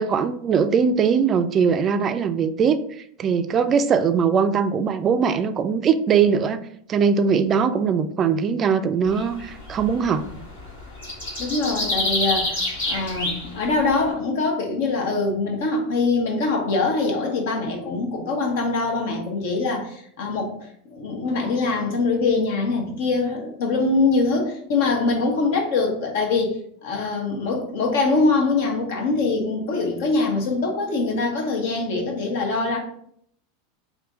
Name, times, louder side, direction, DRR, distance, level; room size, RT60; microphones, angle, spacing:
voice 1, 0.0-2.8 3.2-6.6 6.9-10.2, right 6 dB, 35° right, 10 dB, 0.3 m, -21 dB
sound 1, 9.1-14.0, left 2 dB, 85° left, 1.5 m, -27 dB
voice 2, 11.4-12.6 12.9-20.6 20.9-32.8, left 3 dB, 70° left, 1 dB, 1.0 m, -23 dB
3.4 x 2.6 x 3.7 m, 0.67 s
hypercardioid pair, 100°, 0 cm